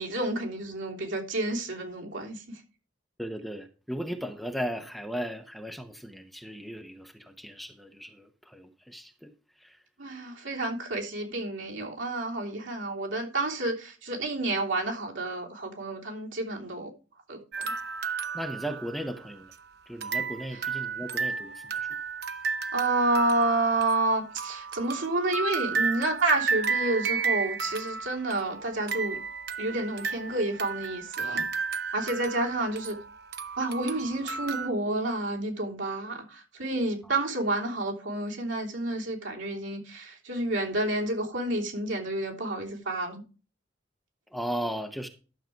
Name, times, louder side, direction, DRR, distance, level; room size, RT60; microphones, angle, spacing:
voice 1, 0.0-2.4 10.0-16.9 17.3-17.7 22.7-29.2 29.6-31.4 31.9-33.0 33.6-43.2, right 2 dB, 75° right, 3.2 m, -29 dB
voice 2, 3.2-9.3 9.6-9.8 18.3-19.5 19.9-21.9 44.3-45.1, equal, ahead, 0.9 m, -36 dB
sound 1, 17.5-19.5 20.0-34.7, right 5 dB, 50° right, 0.9 m, -33 dB
12.0 x 6.7 x 4.5 m
head